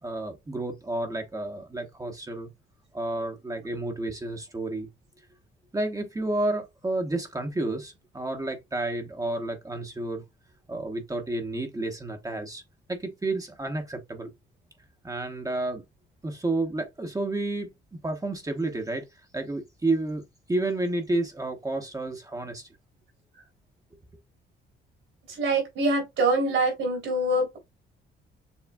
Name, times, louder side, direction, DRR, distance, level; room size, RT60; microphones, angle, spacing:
voice 1, 0.0-2.5 2.9-4.9 5.7-10.2 10.7-12.6 12.9-14.3 15.0-15.8 16.2-20.2 20.5-22.7, right 2 dB, 15° right, 1.0 m, -31 dB
voice 2, 25.3-27.6, right 2 dB, 80° right, 3.6 m, -25 dB
7.1 x 3.2 x 2.3 m
cardioid pair, 90°, 20 cm